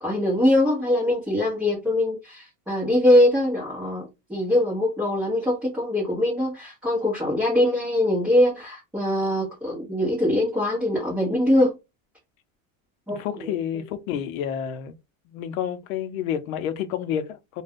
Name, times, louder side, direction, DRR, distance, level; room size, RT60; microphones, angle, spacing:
voice 1, 0.0-11.7 13.1-13.8, left 1 dB, ahead, 0.9 m, -22 dB
voice 2, 13.1-14.9 15.3-17.6, left 9 dB, 85° left, 0.7 m, -29 dB
2.5 x 2.3 x 3.5 m
supercardioid pair, 155°, 40 cm